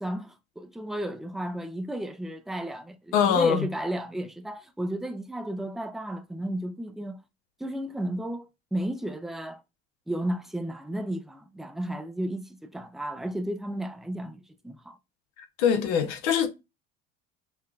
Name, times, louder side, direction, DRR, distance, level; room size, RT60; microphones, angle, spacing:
voice 1, 0.0-7.2 7.6-9.6 10.1-15.0, right 1 dB, ahead, 0.3 m, -33 dB
voice 2, 3.1-3.7 15.6-16.5, left 7 dB, 80° left, 0.8 m, -22 dB
5.6 x 2.1 x 2.3 m
supercardioid pair, 85°, 34 cm